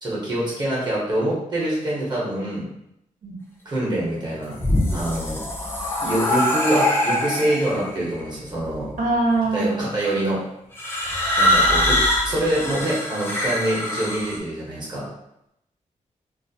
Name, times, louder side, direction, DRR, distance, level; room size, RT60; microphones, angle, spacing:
voice 1, 0.0-2.7 3.6-4.6 4.9-5.4 6.0-8.9 9.5-10.4 11.4-12.0 12.2-15.0, right 1 dB, 35° right, -7 dB, 0.9 m, -25 dB
sound 1, 4.4-7.8 8.7-9.2 10.7-14.4, left 1 dB, 20° left, 0.5 m, -23 dB
voice 2, 9.0-9.9 11.2-11.4, right 2 dB, 85° right, -3 dB, 0.7 m, -23 dB
2.4 x 2.0 x 2.7 m, 0.81 s
wide cardioid pair, 135°, 13 cm